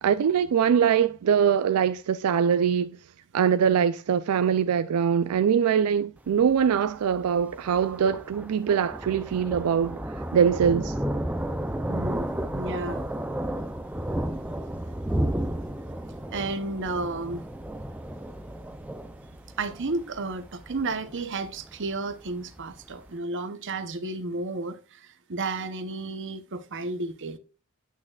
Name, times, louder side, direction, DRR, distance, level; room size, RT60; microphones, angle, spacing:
voice 1, 0.0-3.0 3.3-11.0, right 7 dB, 85° right, 0.4 m, -23 dB
Thunder, 6.2-23.1, right 1 dB, 5° right, 0.4 m, -33 dB
voice 2, 11.9-13.1 16.3-17.5 19.6-27.4, right 3 dB, 55° right, 0.8 m, -32 dB
8.7 x 8.4 x 2.4 m
head